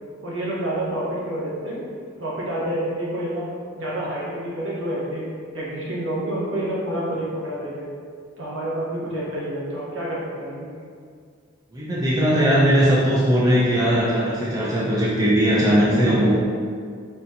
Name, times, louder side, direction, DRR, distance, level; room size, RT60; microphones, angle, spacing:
voice 1, 0.2-1.8 2.2-3.4 3.8-5.3 5.5-7.9 8.4-10.7, right 1 dB, 70° right, -6 dB, 1.0 m, -28 dB
voice 2, 11.7-16.3, equal, 20° right, -8 dB, 0.5 m, -19 dB
4.3 x 3.0 x 2.6 m, 2.1 s
head